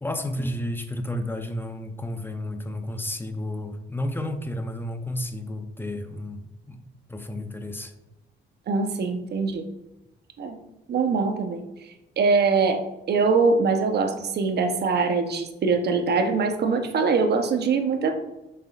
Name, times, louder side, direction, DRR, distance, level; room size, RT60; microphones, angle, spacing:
voice 1, 0.0-6.8 7.1-7.9, left 1 dB, 10° left, 7 dB, 0.7 m, -32 dB
voice 2, 8.7-9.6 10.4-10.6 10.9-12.8 13.1-18.1, right 4 dB, 55° right, 6 dB, 0.9 m, -23 dB
7.3 x 5.8 x 2.4 m, 1.0 s
cardioid pair, 90°, 20 cm